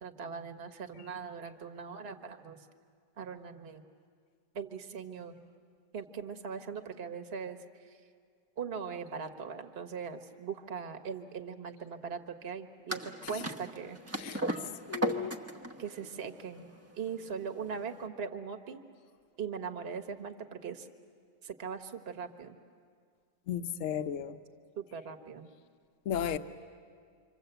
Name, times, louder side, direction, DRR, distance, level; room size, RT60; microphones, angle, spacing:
voice 1, 0.0-2.6 3.2-3.8 4.5-5.4 5.9-8.0 8.6-14.0 15.8-16.7 16.9-18.8 19.4-20.9 21.4-22.6 24.8-25.5, right 6 dB, 35° right, 5 dB, 1.4 m, -40 dB
sound 1, 12.9-18.0, right 1 dB, 20° right, 0.4 m, -37 dB
voice 2, 14.9-15.3 23.5-24.4 26.1-26.4, left 9 dB, 50° left, 8 dB, 1.0 m, -34 dB
26.5 x 26.0 x 8.0 m, 2.1 s
omnidirectional pair, 2.0 m